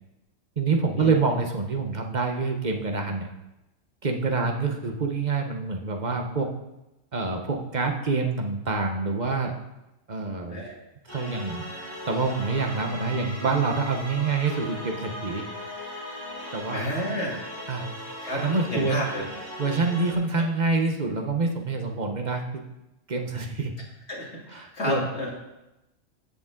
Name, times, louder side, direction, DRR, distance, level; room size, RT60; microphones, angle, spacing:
voice 1, 0.6-3.3 4.0-6.5 7.1-9.5 10.1-10.6 11.1-11.7 12.1-15.4 16.5-16.9 17.7-17.9 18.3-19.0 19.6-22.6 23.1-23.7 24.5-25.0, right 4 dB, 35° right, 3 dB, 1.3 m, -26 dB
sound 1, 11.1-20.1, left 1 dB, 15° left, 3.0 m, -38 dB
voice 2, 16.7-17.4 18.2-19.2 24.1-25.3, equal, 55° left, -4 dB, 3.0 m, -31 dB
15.5 x 7.0 x 3.9 m, 0.94 s
omnidirectional pair, 1.4 m